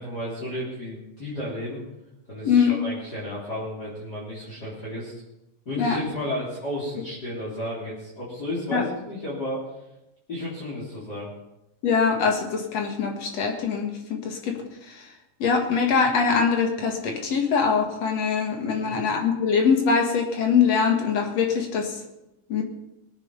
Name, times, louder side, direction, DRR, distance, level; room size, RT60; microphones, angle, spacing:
voice 1, 0.0-1.8 2.3-5.2 5.7-9.7 10.3-11.3 18.7-19.0, left 1 dB, 30° left, -7 dB, 4.0 m, -33 dB
voice 2, 2.4-2.8 5.8-6.0 8.7-8.8 11.8-14.6 15.4-21.9 22.5-22.6, left 6 dB, 55° left, 3 dB, 2.7 m, -23 dB
20.0 x 9.0 x 5.5 m, 0.93 s
omnidirectional pair, 3.9 m